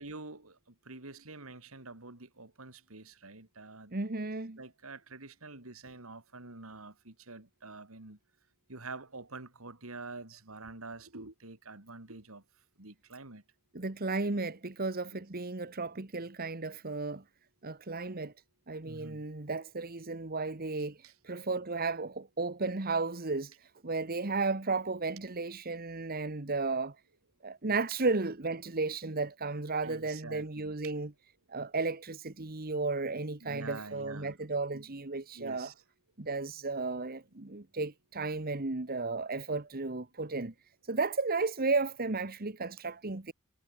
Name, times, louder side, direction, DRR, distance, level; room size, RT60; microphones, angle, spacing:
voice 1, 0.0-3.9 4.6-8.2 8.7-12.4 12.8-13.4 15.1-15.2 18.9-19.2 21.0-21.1 29.8-30.7 33.4-34.4 34.7-34.9 35.3-35.7, right 3 dB, 80° right, 3.1 m, -47 dB
voice 2, 3.9-4.6 13.7-17.2 17.6-18.3 18.7-23.5 23.8-26.9 27.4-31.1 31.5-35.7 36.2-40.5 40.9-43.3, right 3 dB, 45° right, 1.4 m, -34 dB
head